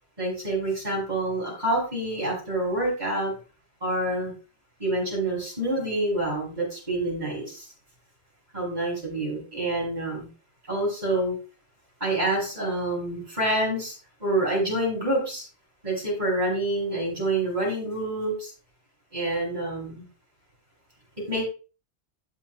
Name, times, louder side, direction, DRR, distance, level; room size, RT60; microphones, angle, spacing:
voice 1, 0.2-3.3 3.8-4.3 4.8-7.7 8.5-10.3 10.7-11.3 12.0-13.9 14.2-15.4 15.8-18.5 19.1-20.1 21.3-21.4, right 1 dB, 40° right, -3 dB, 6.5 m, -27 dB
16.5 x 6.6 x 2.3 m, 0.34 s
omnidirectional pair, 1.2 m